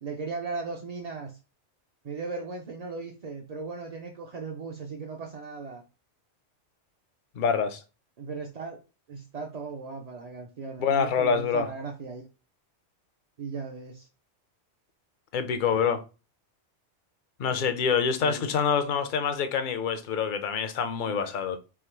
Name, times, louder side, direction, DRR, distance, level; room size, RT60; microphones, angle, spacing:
voice 1, 0.0-1.4 2.0-5.8 8.2-8.8 9.1-12.3 13.4-14.1 18.2-18.5, right 4 dB, 40° right, 0.6 m, -37 dB
voice 2, 7.4-7.8 10.8-11.7 15.3-16.0 17.4-21.6, left 6 dB, 55° left, 0.6 m, -26 dB
3.6 x 2.9 x 4.5 m
omnidirectional pair, 1.2 m